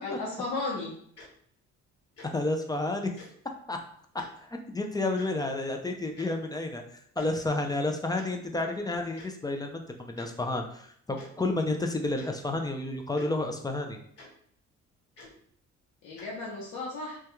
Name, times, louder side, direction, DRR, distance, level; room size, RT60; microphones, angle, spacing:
voice 1, 0.0-0.9 16.0-17.2, left 3 dB, 80° left, -4 dB, 0.7 m, -34 dB
Tick-tock, 1.2-1.3 2.1-2.3 3.2-3.3 4.1-4.3 5.2-5.3 6.2-6.3 7.1-7.3 8.2-8.3 9.2-9.3 10.1-10.3 11.2-11.3 12.1-12.3 13.2-13.3 14.2-14.3 15.1-15.3 16.2-16.3, left 2 dB, 55° left, 1.2 m, -49 dB
voice 2, 2.3-3.1 3.7-3.8 4.7-6.8 7.2-14.0, left 2 dB, 15° left, 4 dB, 0.3 m, -30 dB
2.2 x 2.2 x 2.9 m, 0.64 s
cardioid pair, 90°, 30 cm